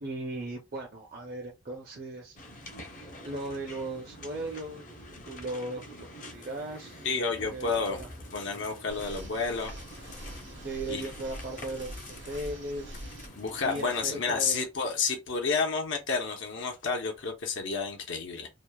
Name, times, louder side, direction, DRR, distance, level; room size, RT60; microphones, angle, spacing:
voice 1, 0.0-2.4 3.2-4.9 5.3-8.1 10.6-13.0 13.6-14.7, right 2 dB, 50° right, 0.5 m, -37 dB
sound 1, 2.4-14.6, left 1 dB, 45° left, 0.6 m, -47 dB
voice 2, 7.0-8.0 8.3-9.7 10.9-11.0 13.4-18.5, left 4 dB, 85° left, 0.7 m, -30 dB
sound 2, 8.9-13.3, right 1 dB, 80° right, 0.9 m, -44 dB
2.9 x 2.0 x 2.2 m
head